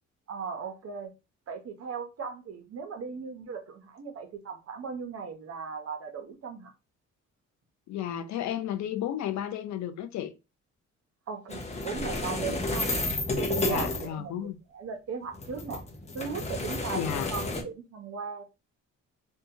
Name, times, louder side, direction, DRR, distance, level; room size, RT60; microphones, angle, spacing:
voice 1, 0.3-1.1 1.5-6.7 11.3-12.9 13.3-15.8 16.1-18.4, right 6 dB, 50° right, 0.7 m, -37 dB
voice 2, 7.9-10.3 13.6-14.6 16.9-17.3, left 10 dB, 65° left, 0.5 m, -33 dB
sound 1, 11.5-14.1 15.3-17.6, left 2 dB, 20° left, 0.7 m, -31 dB
2.7 x 2.2 x 2.7 m
cardioid pair, 90°, 30 cm